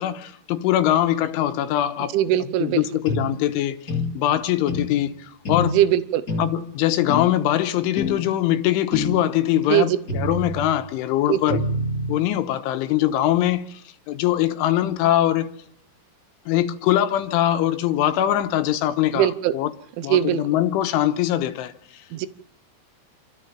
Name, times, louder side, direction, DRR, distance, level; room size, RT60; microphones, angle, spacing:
voice 1, 0.0-3.8 4.1-5.8 6.4-11.6 12.1-13.8 14.1-15.5 16.5-19.7 20.0-22.0, left 12 dB, 80° left, 3.4 m, -22 dB
voice 2, 2.1-2.8 5.6-6.2 9.7-10.0 11.3-11.6 19.1-19.5 20.1-20.4 22.1-22.3, right 12 dB, 75° right, 3.3 m, -20 dB
sound 1, 3.1-3.3 3.9-4.1 4.7-4.9 5.4-5.7 6.3-6.5 7.1-7.3 8.0-8.2 8.9-9.2 10.1-10.7 11.5-12.2, left 2 dB, 20° left, 2.7 m, -26 dB
28.5 x 13.5 x 7.4 m
omnidirectional pair, 5.8 m